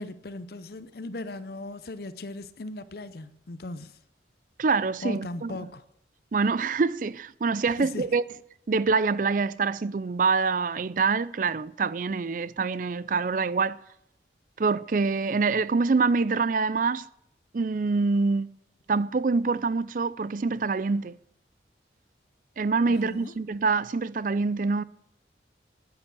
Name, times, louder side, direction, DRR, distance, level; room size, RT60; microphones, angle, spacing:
voice 1, 0.0-4.0 5.0-5.8 7.8-8.1 22.9-23.4, left 2 dB, 55° left, 0.6 m, -38 dB
voice 2, 4.6-5.6 6.3-8.2 8.7-13.8 14.6-17.0 17.5-18.5 18.9-21.2 22.6-24.8, right 4 dB, 45° right, 0.4 m, -25 dB
10.0 x 9.7 x 8.3 m
head